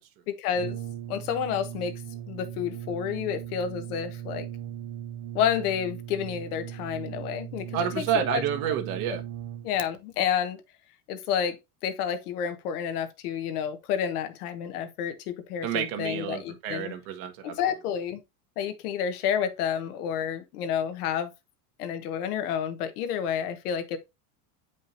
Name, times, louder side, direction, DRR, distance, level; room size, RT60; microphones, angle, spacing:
voice 1, 0.3-0.8 1.1-2.0 2.3-4.5 5.3-8.4 9.6-10.6 11.1-11.6 11.8-16.9 17.4-18.2 18.6-21.3 21.8-24.0, left 8 dB, 80° left, 1.4 m, -30 dB
Brass instrument, 0.5-9.9, right 11 dB, 40° right, 0.6 m, -38 dB
voice 2, 7.7-9.2 15.6-17.5, right 9 dB, 65° right, 1.7 m, -29 dB
8.5 x 5.2 x 2.6 m
supercardioid pair, 140°, 44 cm